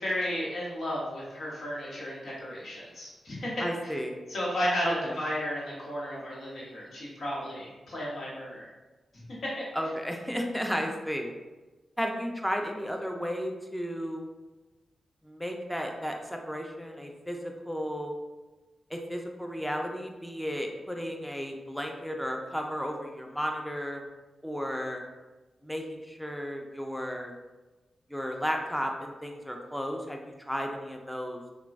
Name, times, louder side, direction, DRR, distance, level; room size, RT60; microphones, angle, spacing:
voice 1, 0.0-3.5 4.3-8.7, equal, 70° left, -7 dB, 1.1 m, -33 dB
voice 2, 3.6-4.2 4.8-5.2 9.7-11.3 12.0-14.2 15.2-18.1 18.9-24.0 24.4-25.0 25.6-27.3 28.1-31.4, equal, 5° left, 2 dB, 0.5 m, -33 dB
2.9 x 2.2 x 2.5 m, 1.2 s
supercardioid pair, 40°, 0 cm